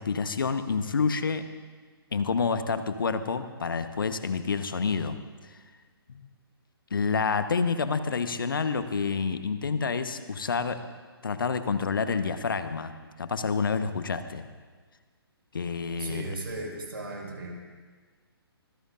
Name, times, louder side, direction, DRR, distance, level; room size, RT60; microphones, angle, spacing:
voice 1, 0.0-1.5 2.1-5.2 5.5-5.6 6.1-6.3 6.9-10.8 11.2-12.9 13.2-14.4 15.5-16.3, left 5 dB, 55° left, 10 dB, 1.2 m, -28 dB
voice 2, 16.0-17.5, right 2 dB, 65° right, -1 dB, 5.6 m, -36 dB
25.5 x 21.5 x 2.6 m, 1.5 s
figure-of-eight pair, 135°, 13 cm